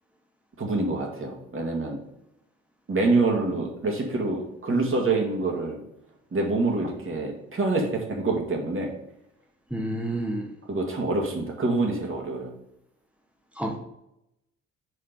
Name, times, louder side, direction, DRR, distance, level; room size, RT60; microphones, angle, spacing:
voice 1, 0.6-2.0 2.9-5.8 6.3-8.9 10.7-12.5, right 3 dB, 35° right, 0 dB, 2.0 m, -26 dB
voice 2, 9.7-10.5 13.6-13.8, right 1 dB, 5° right, 1 dB, 1.5 m, -29 dB
6.2 x 4.3 x 5.2 m, 0.84 s
figure-of-eight pair, 45°, 38 cm